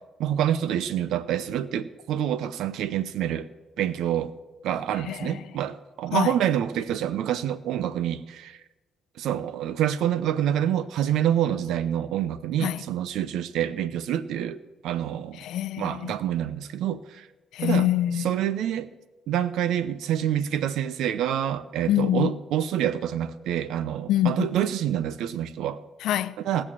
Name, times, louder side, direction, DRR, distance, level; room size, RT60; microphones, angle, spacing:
voice 1, 0.2-3.5 3.8-4.3 4.6-8.6 9.2-14.6 14.8-15.4 15.8-17.2 17.6-17.9 18.2-18.9 19.3-25.8 26.4-26.6, right 10 dB, 85° right, 0.7 m, -27 dB
voice 2, 5.0-5.5 6.1-6.3 12.6-12.8 15.3-16.1 17.5-18.3 21.9-22.3 24.1-24.5 26.0-26.4, left 12 dB, 85° left, 0.5 m, -25 dB
18.5 x 6.6 x 7.4 m
cardioid pair, 90°, 0 cm